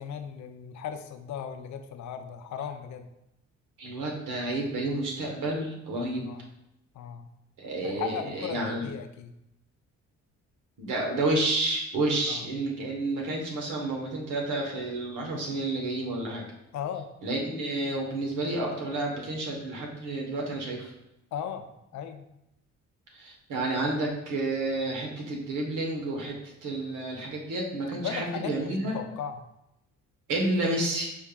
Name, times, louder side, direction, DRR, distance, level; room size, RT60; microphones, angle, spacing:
voice 1, 0.0-3.1 6.3-6.5 6.9-7.3 7.8-9.4 12.3-12.5 16.7-17.1 21.3-21.6 21.9-22.3 28.0-29.4, left 8 dB, 70° left, 7 dB, 0.5 m, -37 dB
voice 2, 3.8-6.3 7.6-8.9 10.8-16.4 17.2-20.9 23.1-28.9 30.3-31.2, right 2 dB, 85° right, -1 dB, 1.2 m, -30 dB
5.4 x 3.4 x 2.3 m, 0.86 s
cardioid pair, 90°, 30 cm